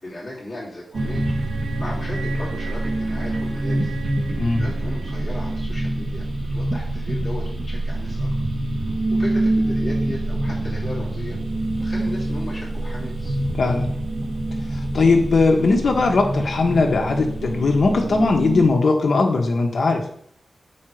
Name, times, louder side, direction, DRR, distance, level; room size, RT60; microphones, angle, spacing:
voice 1, 0.0-3.9 4.4-6.2 6.5-8.3 8.8-11.4 11.8-13.4, left 1 dB, 25° left, -8 dB, 3.0 m, -36 dB
sound 1, 0.9-18.7, right 1 dB, 55° right, 1.7 m, -25 dB
voice 2, 4.4-4.7 13.6-13.9 14.7-20.1, left 3 dB, 65° left, 2 dB, 1.5 m, -19 dB
7.7 x 5.4 x 5.0 m, 0.65 s
wide cardioid pair, 150°, 0 cm